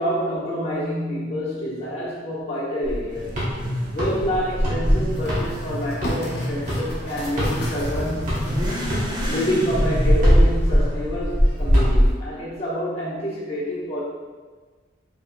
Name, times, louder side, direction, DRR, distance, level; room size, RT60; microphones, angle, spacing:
voice 1, 0.0-3.3 3.9-8.5 9.2-14.0, equal, 35° left, -9 dB, 1.3 m, -27 dB
sound 1, 2.8-7.9 8.3-12.1, equal, 40° right, 1.1 m, -21 dB
Motorcycle / Accelerating revving vroom, 3.1-12.0, equal, 20° right, 0.6 m, -31 dB
sound 2, 5.1-9.1 9.7-9.8, equal, 55° left, 0.7 m, -34 dB
4.7 x 3.4 x 2.4 m, 1.4 s
head